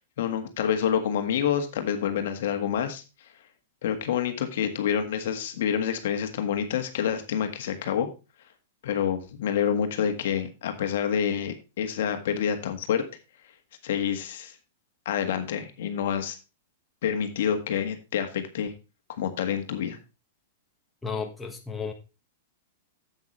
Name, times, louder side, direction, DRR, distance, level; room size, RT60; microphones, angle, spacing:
voice 1, 0.2-3.0 3.8-8.1 8.8-13.0 13.8-14.5 15.1-16.3 17.0-18.7 19.2-20.0, left 8 dB, 70° left, 1.6 m, -27 dB
voice 2, 21.0-21.9, left 5 dB, 10° left, 1.5 m, -33 dB
9.4 x 8.1 x 3.2 m
hypercardioid pair, 135°, 0 cm